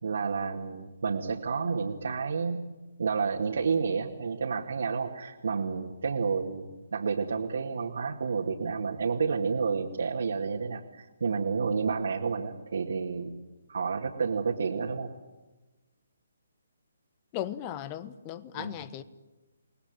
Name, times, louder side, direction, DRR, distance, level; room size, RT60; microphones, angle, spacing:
voice 1, 0.0-2.6 3.0-13.3 13.7-15.1 18.5-18.7, right 5 dB, 65° right, 2.3 m, -30 dB
voice 2, 17.3-19.0, left 11 dB, 25° left, 1.3 m, -37 dB
29.0 x 19.5 x 9.2 m
figure-of-eight pair, 140°, 0 cm